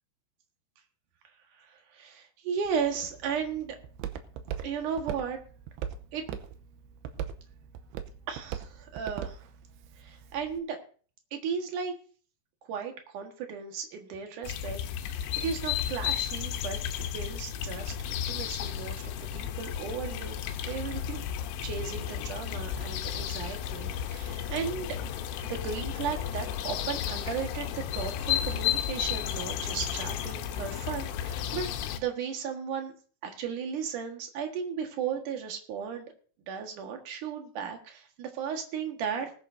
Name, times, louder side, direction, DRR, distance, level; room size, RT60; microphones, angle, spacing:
voice 1, 1.6-3.8 4.6-5.4 6.1-6.2 8.3-9.4 10.0-10.8 11.3-11.9 12.6-21.2 21.6-24.9 25.4-31.7 32.0-32.9 33.2-36.1 36.4-39.3, right 7 dB, 60° right, 4 dB, 2.4 m, -35 dB
Walk footsteps, 2.7-10.6, right 9 dB, 80° right, 2.4 m, -41 dB
sound 1, 14.4-32.0, left 10 dB, 85° left, 3.4 m, -33 dB
19.5 x 10.5 x 2.7 m, 0.41 s
omnidirectional pair, 5.5 m